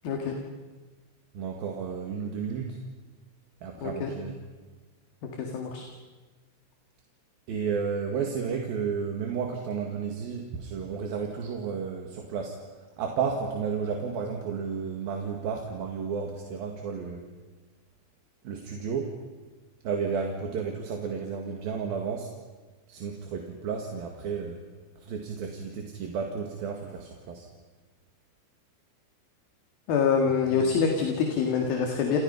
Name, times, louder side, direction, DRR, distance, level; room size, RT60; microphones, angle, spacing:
voice 1, 1.3-2.8 3.6-4.3 7.5-12.6 13.0-17.2 18.4-19.2 19.8-22.3 22.9-24.6 25.0-27.5 30.6-30.7, right 6 dB, 60° right, 2 dB, 3.3 m, -32 dB
voice 2, 5.2-5.9 29.9-32.2, left 6 dB, 55° left, 2 dB, 3.4 m, -26 dB
30.0 x 29.0 x 5.5 m, 1.3 s
omnidirectional pair, 5.6 m